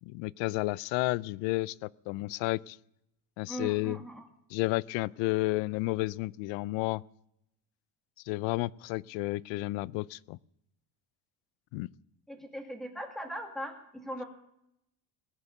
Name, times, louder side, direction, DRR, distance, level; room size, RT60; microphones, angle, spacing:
voice 1, 0.0-2.8 3.4-4.0 4.5-7.0 8.3-10.4 11.7-11.9, left 20 dB, 65° left, 24 dB, 0.5 m, -31 dB
voice 2, 3.5-4.3 12.3-14.2, equal, ahead, 4 dB, 2.0 m, -39 dB
19.0 x 6.8 x 9.1 m, 0.79 s
cardioid pair, 155°, 48 cm